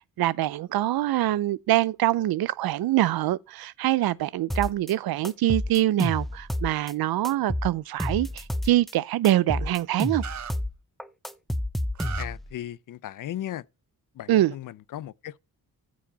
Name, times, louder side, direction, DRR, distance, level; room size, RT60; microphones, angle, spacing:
voice 1, 0.2-10.2 14.3-14.5, right 14 dB, 85° right, 0.6 m, -24 dB
sound 1, 4.5-4.9 5.2-6.9 7.2-8.9 9.2-10.7 11.0-12.5, left 1 dB, ahead, 0.5 m, -30 dB
sound 2, 10.2-10.5 11.9-12.2, right 8 dB, 50° right, 0.9 m, -36 dB
voice 2, 12.2-13.6 14.2-15.4, left 12 dB, 60° left, 0.5 m, -36 dB
14.5 x 4.9 x 4.0 m
wide cardioid pair, 125°, 36 cm